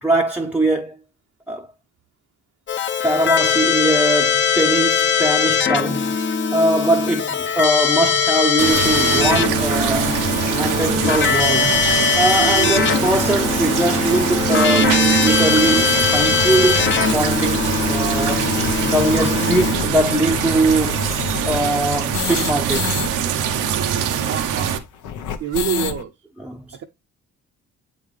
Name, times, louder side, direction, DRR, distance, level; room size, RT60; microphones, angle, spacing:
voice 1, 0.0-1.0 1.5-1.7 3.0-6.2 6.5-10.2 10.6-11.8 12.1-18.5 18.8-21.0 21.4-22.9 26.4-26.8, right 1 dB, 5° right, 0.6 m, -21 dB
Keyboard (musical), 2.7-19.8, left 6 dB, 40° left, 0.8 m, -20 dB
sound 1, 8.6-24.8, right 8 dB, 90° right, 0.8 m, -22 dB
sound 2, 14.4-14.5 15.2-15.3 15.5-15.6 15.9-16.0 16.4-23.1 23.3-23.4 23.6-26.0, left 8 dB, 80° left, 0.9 m, -30 dB
voice 2, 24.2-24.8 25.4-26.1 26.7-26.8, right 8 dB, 55° right, 0.6 m, -26 dB
7.9 x 3.8 x 3.2 m
cardioid pair, 90°, 30 cm